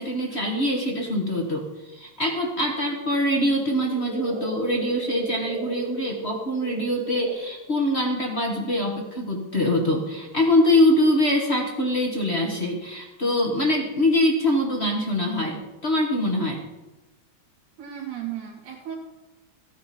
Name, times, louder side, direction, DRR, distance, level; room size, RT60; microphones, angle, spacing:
voice 1, 0.0-16.6, left 1 dB, 35° left, 0 dB, 1.0 m, -24 dB
sound 1, 3.6-7.4, right 3 dB, 70° right, 3.2 m, -34 dB
voice 2, 17.8-18.9, right 11 dB, 85° right, -3 dB, 3.1 m, -35 dB
15.5 x 9.6 x 4.3 m, 1.1 s
omnidirectional pair, 3.4 m